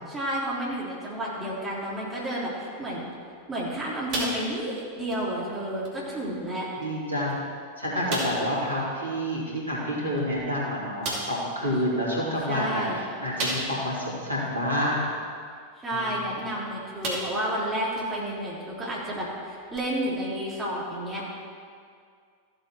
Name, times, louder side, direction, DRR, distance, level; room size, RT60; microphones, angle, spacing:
voice 1, 0.1-3.0 3.5-6.7 12.5-13.0 15.8-21.2, right 1 dB, 15° right, -5 dB, 3.2 m, -31 dB
sound 1, 4.1-4.8 5.1-5.3 5.8-6.0 6.8-6.9 7.3-7.4 8.1-8.5 10.2-10.3 11.0-11.4 13.4-14.0 14.5-14.6 16.4-16.6 17.0-17.5 18.0-18.1 19.7-19.8, right 1 dB, 40° right, 2.5 m, -31 dB
voice 2, 6.8-7.4 7.8-15.1 15.9-16.2, equal, 80° right, -6 dB, 3.1 m, -28 dB
14.0 x 7.8 x 4.5 m, 2.2 s
figure-of-eight pair, 90°, 0 cm